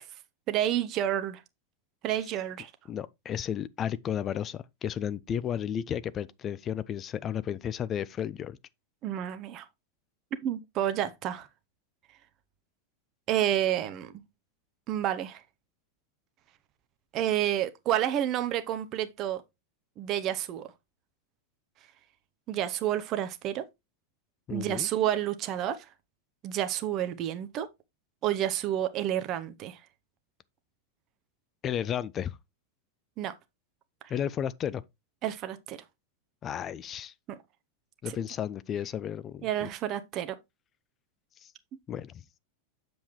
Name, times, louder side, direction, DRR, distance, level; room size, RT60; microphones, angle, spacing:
voice 1, 0.5-1.4 2.0-2.7 9.0-9.6 10.4-11.5 13.3-14.1 14.9-15.4 17.1-19.4 20.0-20.7 22.5-23.6 24.5-25.9 26.4-27.7 28.2-29.8 33.2-33.3 35.2-35.8 38.1-38.2 39.4-40.3, right 11 dB, 35° right, 0.7 m, -29 dB
voice 2, 2.9-8.6 24.5-24.9 31.6-32.4 34.1-34.8 36.4-37.1 38.0-39.7 41.4-41.5 41.9-42.2, left 9 dB, 25° left, 0.4 m, -33 dB
7.8 x 7.0 x 3.0 m
figure-of-eight pair, 90°, 0 cm